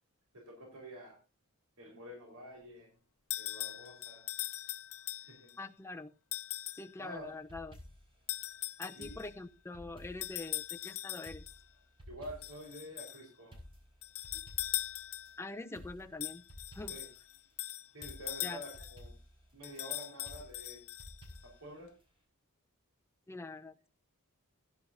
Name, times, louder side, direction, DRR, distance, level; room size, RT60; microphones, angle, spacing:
voice 1, 0.3-1.2 1.8-2.9 3.4-4.3 5.2-5.5 7.0-7.3 8.9-9.2 12.1-13.5 16.9-17.1 17.9-19.1 19.5-20.8 21.4-21.9, equal, 85° right, 1 dB, 4.5 m, -48 dB
sound 1, 3.3-5.5 6.3-6.9 8.3-9.3 10.2-11.6 12.4-13.2 14.0-15.5 16.2-19.0 19.6-21.4, left 16 dB, 70° left, 0.8 m, -40 dB
voice 2, 5.6-6.1 6.8-7.8 8.8-11.5 15.4-16.4 16.7-17.0 18.4-18.6 23.3-23.9, left 2 dB, 10° left, 6 dB, 0.7 m, -44 dB
sound 2, 7.2-8.2 9.0-10.8 11.2-12.7 13.0-13.1 13.5-15.3 15.7-17.2 17.5-17.6 18.0-19.8 20.2-21.7 22.0-22.1, left 1 dB, 25° right, 5.4 m, -53 dB
16.5 x 11.0 x 2.7 m, 0.30 s
head